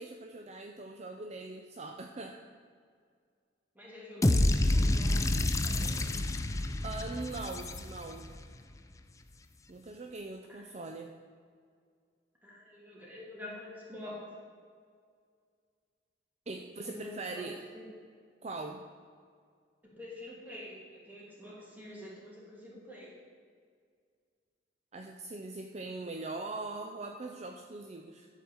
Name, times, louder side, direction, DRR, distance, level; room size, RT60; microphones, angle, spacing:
voice 1, 0.0-2.4 6.8-8.3 9.7-11.1 16.5-17.6 18.4-18.8 24.9-28.3, right 3 dB, 35° right, 3 dB, 0.5 m, -41 dB
voice 2, 3.8-5.3 5.6-6.1 10.5-10.6 12.4-14.2 16.9-17.4 17.7-17.9 20.0-23.1, left 1 dB, 10° right, -5 dB, 2.6 m, -47 dB
sound 1, 4.2-8.3, left 1 dB, 15° left, 0.5 m, -28 dB
12.0 x 4.6 x 7.1 m, 2.1 s
head